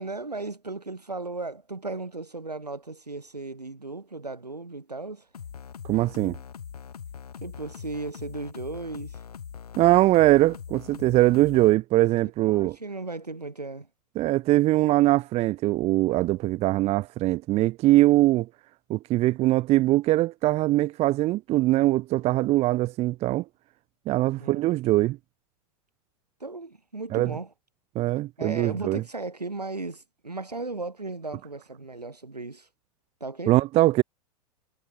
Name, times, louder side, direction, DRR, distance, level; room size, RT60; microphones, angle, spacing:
voice 1, 0.0-5.3 7.4-9.2 12.5-13.9 24.4-24.6 26.4-27.5 28.4-32.7 33.2-33.6, right 3 dB, 85° right, 5.2 m, -36 dB
sound 1, 5.3-11.7, left 7 dB, 70° left, 8.0 m, -41 dB
voice 2, 5.8-6.4 9.8-12.8 14.2-18.5 18.9-23.4 24.1-25.2 27.1-27.4 27.9-29.0 33.5-34.0, right 17 dB, 30° right, 1.0 m, -22 dB
figure-of-eight pair, 95°, 20 cm